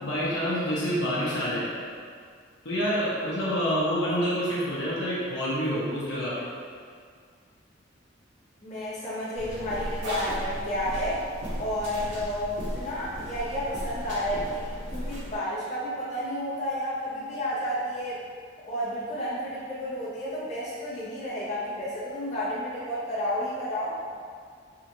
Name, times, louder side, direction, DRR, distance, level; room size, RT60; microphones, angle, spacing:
voice 1, 0.0-1.7 2.6-6.5, equal, 70° left, -8 dB, 0.8 m, -27 dB
voice 2, 8.6-11.2 11.6-18.2 18.7-24.0, equal, 40° left, -10 dB, 0.8 m, -31 dB
sound 1, 9.3-15.4, equal, 75° right, 1.2 m, -36 dB
3.6 x 2.4 x 2.9 m, 2.1 s
head